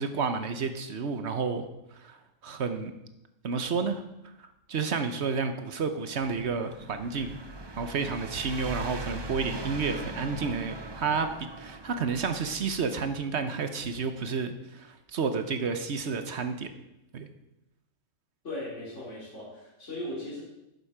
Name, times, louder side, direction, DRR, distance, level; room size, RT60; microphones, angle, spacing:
voice 1, 0.0-1.7 1.9-2.2 2.4-2.9 3.4-4.0 4.4-7.4 7.8-16.7 17.1-17.3, right 5 dB, 55° right, 8 dB, 1.1 m, -31 dB
sound 1, 6.2-12.9, right 1 dB, 25° right, 0.6 m, -40 dB
voice 2, 18.4-20.4, left 1 dB, 60° left, -7 dB, 3.9 m, -38 dB
11.5 x 8.1 x 5.0 m, 0.91 s
omnidirectional pair, 1.4 m